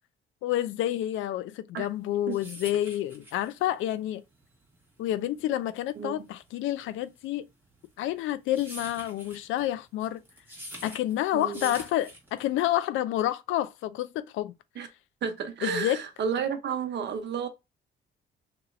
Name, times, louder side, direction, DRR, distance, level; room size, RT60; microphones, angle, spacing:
voice 1, 0.4-4.2 5.0-7.5 8.0-10.2 10.8-14.5 15.6-16.0, left 13 dB, 85° left, 0.4 m, -29 dB
sound 1, 1.9-12.7, equal, 10° right, 1.5 m, -46 dB
voice 2, 6.0-6.3 11.3-11.8 14.8-14.9 15.2-17.5, right 6 dB, 60° right, 0.8 m, -32 dB
2.9 x 2.9 x 2.5 m
cardioid pair, 90°, 20 cm